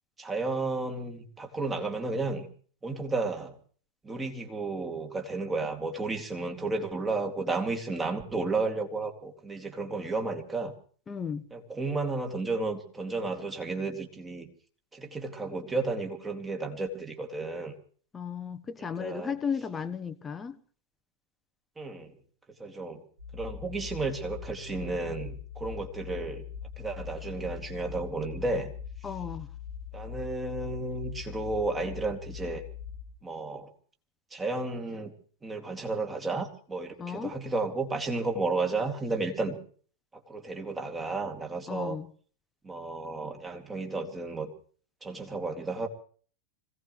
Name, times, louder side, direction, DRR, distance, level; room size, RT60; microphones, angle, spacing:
voice 1, 0.2-2.5 2.8-3.5 4.0-10.7 11.5-14.5 14.9-17.7 18.8-19.3 21.8-22.2 22.6-23.0 23.3-26.4 26.8-28.7 29.9-32.6 33.2-33.7 34.3-35.1 35.4-39.6 40.3-42.0 42.6-44.5 45.0-45.9, right 3 dB, 15° right, 2.6 m, -32 dB
voice 2, 11.1-11.4 18.1-20.6 29.0-29.5 37.0-37.3 41.7-42.1, left 6 dB, 20° left, 1.0 m, -34 dB
sound 1, 23.2-33.1, left 8 dB, 60° right, 4.5 m, -42 dB
26.0 x 17.0 x 3.2 m
figure-of-eight pair, 90°, 0 cm